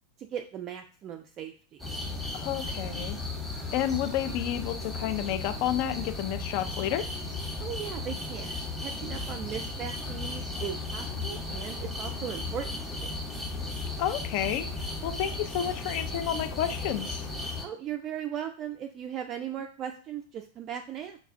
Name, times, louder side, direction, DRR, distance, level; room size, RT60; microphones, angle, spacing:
voice 1, 0.2-1.8 7.6-13.1 17.6-21.2, right 9 dB, 30° right, 5 dB, 0.3 m, -38 dB
sound 1, 1.8-17.6, left 2 dB, ahead, 0.9 m, -35 dB
voice 2, 2.3-3.2 3.7-7.0 14.0-17.3, left 11 dB, 45° left, 9 dB, 0.4 m, -30 dB
5.7 x 2.4 x 2.5 m, 0.40 s
figure-of-eight pair, 90°, 0 cm